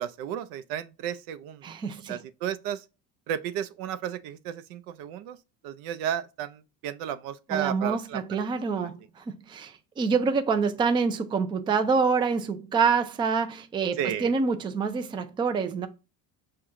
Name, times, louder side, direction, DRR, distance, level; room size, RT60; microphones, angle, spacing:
voice 1, 0.0-1.7 2.1-2.8 3.3-5.4 5.6-8.4 14.0-14.3, right 9 dB, 90° right, 0.6 m, -33 dB
voice 2, 1.6-2.2 7.5-15.9, right 5 dB, 15° right, 0.3 m, -26 dB
6.2 x 2.3 x 3.6 m
cardioid pair, 155°, 34 cm